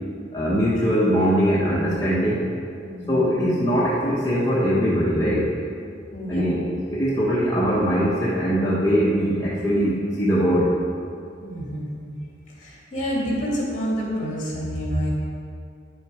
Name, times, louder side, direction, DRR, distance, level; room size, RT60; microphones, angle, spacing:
voice 1, 0.3-2.4 3.1-5.5 6.3-6.6 6.9-10.8, equal, 20° left, -9 dB, 1.2 m, -21 dB
voice 2, 2.8-3.2 5.2-5.7 6.1-6.5 6.8-7.4 11.4-12.2 12.5-15.1, equal, 40° left, -4 dB, 2.8 m, -29 dB
10.0 x 7.6 x 5.0 m, 2.5 s
head